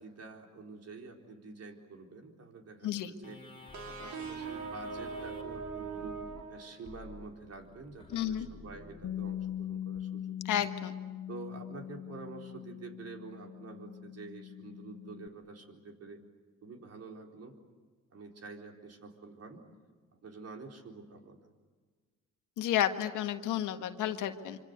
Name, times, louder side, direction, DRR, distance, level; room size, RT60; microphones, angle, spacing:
voice 1, 0.0-3.4 3.9-10.6 11.3-16.2 16.6-17.5 18.1-19.6 20.1-21.4, right 4 dB, 55° right, 3 dB, 4.2 m, -48 dB
sound 1, 3.2-10.0, left 3 dB, 20° left, 3.6 m, -52 dB
sound 2, 3.7-7.3, right 5 dB, 70° right, 4.5 m, -41 dB
voice 2, 8.1-8.5 10.5-10.9 22.6-24.6, left 11 dB, 85° left, 7 dB, 1.7 m, -31 dB
Bass guitar, 9.0-15.3, left 10 dB, 60° left, 0.8 m, -41 dB
25.5 x 25.5 x 8.2 m, 1.5 s
cardioid pair, 90°, 30 cm